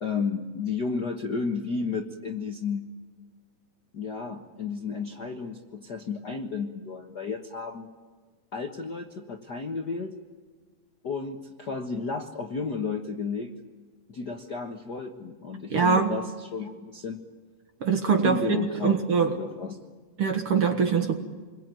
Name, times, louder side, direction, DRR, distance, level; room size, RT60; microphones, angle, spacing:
voice 1, 0.0-2.9 3.9-7.9 8.5-10.1 11.0-13.5 14.1-17.2 18.2-19.0 19.3-19.8, left 5 dB, 50° left, 2 dB, 1.2 m, -32 dB
voice 2, 15.7-16.1 17.8-19.3 20.2-21.2, right 5 dB, 50° right, 5 dB, 2.0 m, -23 dB
28.0 x 22.0 x 9.1 m, 1.5 s
omnidirectional pair, 3.8 m